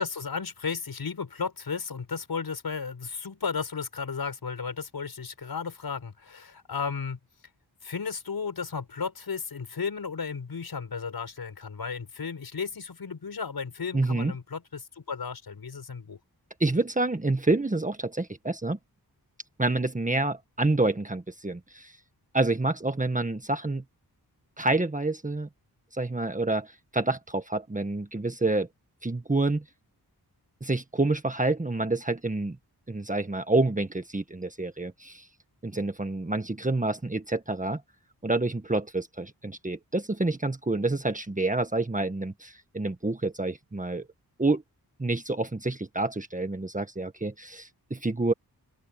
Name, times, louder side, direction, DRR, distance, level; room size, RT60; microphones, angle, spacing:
voice 1, 0.0-7.2 7.8-16.2, left 5 dB, 70° left, 6.2 m, -34 dB
voice 2, 13.9-14.3 16.6-18.8 19.6-21.9 22.3-23.8 24.6-25.5 25.9-28.7 29.0-29.6 30.6-32.6 32.9-35.2 35.6-37.8 38.2-44.1 44.4-44.6 45.0-48.3, right 2 dB, 20° right, 1.6 m, -28 dB
open air
wide cardioid pair, 105°, 38 cm